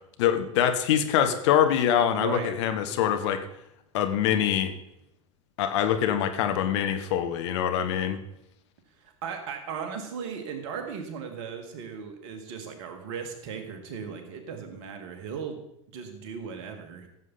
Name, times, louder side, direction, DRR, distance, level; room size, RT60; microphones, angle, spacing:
voice 1, 0.2-3.4 3.9-4.7 5.6-8.2, left 9 dB, 60° left, 8 dB, 1.2 m, -24 dB
voice 2, 2.2-2.6 9.0-15.6 15.9-17.1, right 6 dB, 55° right, 5 dB, 2.0 m, -37 dB
15.0 x 7.5 x 4.2 m, 0.82 s
figure-of-eight pair, 85°, 16 cm